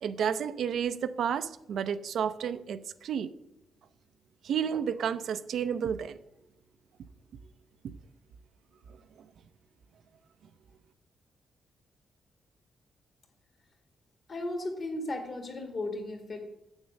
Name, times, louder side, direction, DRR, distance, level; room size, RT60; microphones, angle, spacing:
voice 1, 0.0-3.3 4.4-6.2, right 8 dB, 70° right, 12 dB, 0.5 m, -31 dB
voice 2, 14.3-16.4, left 2 dB, 40° left, 5 dB, 1.9 m, -35 dB
8.1 x 7.2 x 6.3 m, 0.88 s
wide cardioid pair, 140°, 0 cm